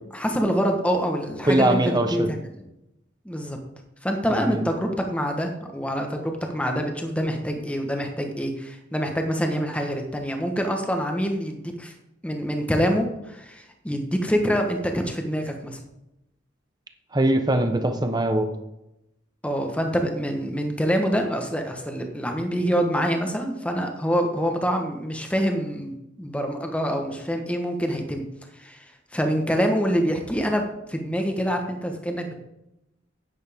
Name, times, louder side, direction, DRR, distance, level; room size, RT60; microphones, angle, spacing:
voice 1, 0.1-1.8 2.1-2.5 3.2-3.6 4.0-11.9 12.2-15.8 19.4-28.2 28.6-32.3, equal, 5° left, 3 dB, 1.3 m, -26 dB
voice 2, 1.4-2.3 4.4-4.7 17.1-18.5, right 1 dB, 20° right, 6 dB, 1.0 m, -21 dB
10.5 x 9.4 x 3.6 m, 0.90 s
head